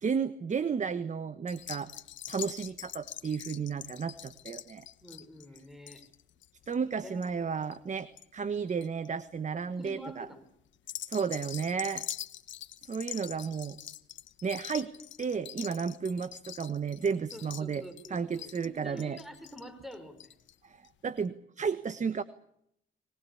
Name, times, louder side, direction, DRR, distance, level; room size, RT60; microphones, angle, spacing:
voice 1, 0.0-1.9 2.3-4.9 6.7-10.3 11.1-12.1 12.9-13.8 14.4-14.9 15.2-17.8 18.1-19.2 20.6-22.2, right 6 dB, 35° right, 13 dB, 1.2 m, -33 dB
sound 1, 1.5-8.3 8.5-9.1 9.6-9.9 10.7-20.5 20.8-20.9 21.2-21.3, left 11 dB, 70° left, 1.2 m, -44 dB
voice 2, 5.0-6.0 7.0-7.2 9.8-10.4 17.3-20.3, equal, ahead, 9 dB, 5.0 m, -47 dB
25.5 x 20.0 x 8.5 m, 0.75 s
cardioid pair, 90°, 20 cm